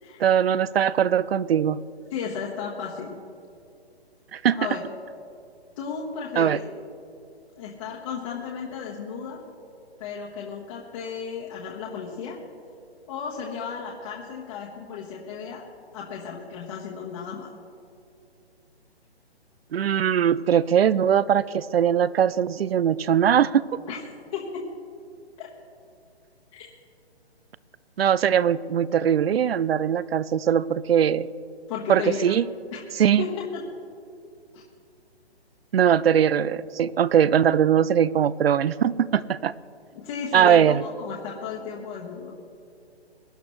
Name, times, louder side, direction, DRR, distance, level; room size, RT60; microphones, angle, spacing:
voice 1, 0.2-1.8 4.3-4.6 6.4-6.6 19.7-23.6 28.0-31.3 31.9-32.5 33.0-33.2 35.7-39.5 40.3-40.8, right 9 dB, 65° right, 19 dB, 0.5 m, -21 dB
voice 2, 2.1-3.2 4.5-4.8 5.8-6.6 7.5-9.4 10.0-12.4 13.1-15.6 15.9-17.5 23.9-24.0 24.3-24.7 25.4-25.5 26.5-26.7 31.7-32.4 32.7-32.8 33.2-33.6 34.5-34.6 39.9-42.4, left 6 dB, 30° left, -4 dB, 1.4 m, -34 dB
23.0 x 11.0 x 3.2 m, 2.5 s
figure-of-eight pair, 145°, 32 cm